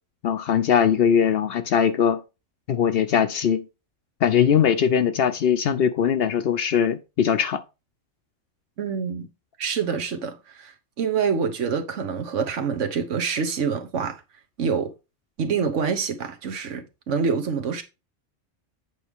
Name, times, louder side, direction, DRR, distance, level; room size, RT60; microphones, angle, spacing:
voice 1, 0.2-2.2 2.7-3.7 4.2-7.6, left 8 dB, 60° left, 0.7 m, -21 dB
voice 2, 8.8-9.3 9.6-14.2 14.6-14.9 15.4-17.8, right 6 dB, 75° right, 1.3 m, -26 dB
8.4 x 4.8 x 3.5 m
omnidirectional pair, 1.3 m